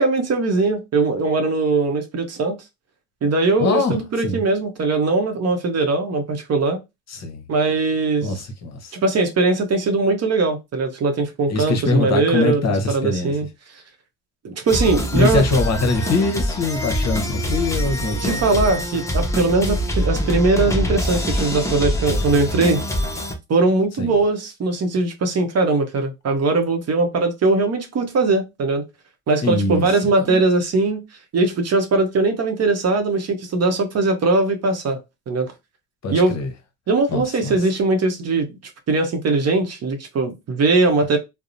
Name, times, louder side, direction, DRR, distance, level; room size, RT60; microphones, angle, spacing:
voice 1, 0.0-2.6 3.2-6.8 7.5-8.3 8.9-12.6 12.9-13.5 14.4-15.4 18.2-22.8 23.5-28.8 29.3-31.0 31.3-35.0 35.3-35.5 36.1-36.4 36.9-38.6 38.9-41.2, right 3 dB, 40° right, 0.7 m, -20 dB
voice 2, 3.6-4.4 7.1-7.4 8.2-9.0 11.5-13.4 15.1-18.4 24.0-24.2 29.4-29.9 30.2-30.4 36.0-36.5 37.1-37.6, left 3 dB, 40° left, 0.9 m, -23 dB
sound 1, 14.7-23.3, equal, 10° left, 0.6 m, -24 dB
2.8 x 2.0 x 2.5 m
supercardioid pair, 80°, 40 cm